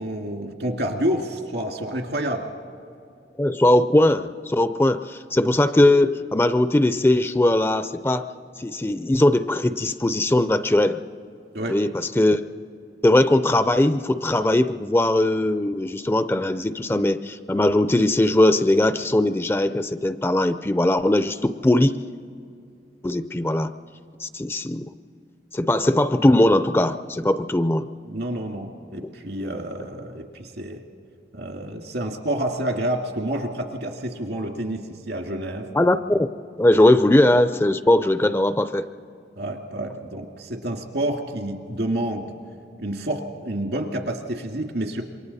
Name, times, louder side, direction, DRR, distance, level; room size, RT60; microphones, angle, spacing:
voice 1, 0.0-2.5 11.5-11.8 28.1-30.8 31.3-35.7 39.4-42.3 42.8-45.0, right 1 dB, 75° right, 3 dB, 2.1 m, -28 dB
voice 2, 3.4-8.3 8.6-11.0 11.7-12.4 13.0-22.0 23.0-23.7 24.2-24.9 25.5-27.9 35.7-36.3 36.6-38.9, left 1 dB, 15° left, 11 dB, 0.4 m, -20 dB
27.5 x 23.5 x 4.1 m, 2.4 s
head